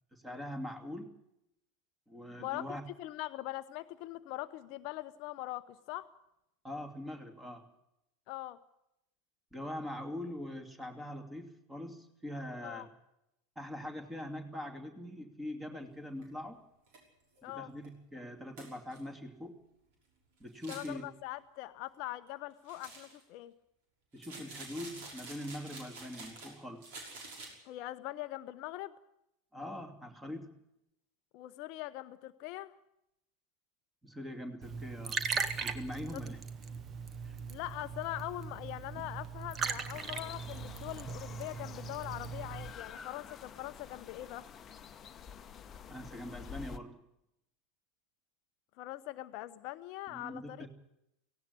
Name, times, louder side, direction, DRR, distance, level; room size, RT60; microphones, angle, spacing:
voice 1, 0.1-1.1 2.1-2.8 6.6-7.7 9.5-12.9 13.6-16.6 17.5-19.6 20.4-21.1 24.1-26.9 29.5-30.5 34.0-35.2 35.6-36.4 37.2-37.4 45.9-47.0 50.1-50.7, left 1 dB, 10° right, 5 dB, 2.8 m, -43 dB
voice 2, 2.4-6.1 8.3-8.6 12.6-12.9 17.4-17.7 20.7-23.5 27.6-28.9 31.3-32.7 36.1-36.2 37.5-44.5 48.8-50.7, left 16 dB, 45° left, 11 dB, 0.7 m, -42 dB
sound 1, 16.2-16.3 16.9-17.0 17.4-17.5 17.8-17.9 18.6-19.0 20.5-20.9 22.7-23.2 24.2-26.5 26.8-27.5, right 3 dB, 55° right, 5.8 m, -48 dB
Liquid, 34.6-42.7, right 5 dB, 30° right, 1.5 m, -39 dB
sound 2, 39.9-46.8, left 7 dB, 25° left, 1.1 m, -49 dB
17.5 x 16.5 x 9.8 m, 0.84 s
figure-of-eight pair, 80°, 0 cm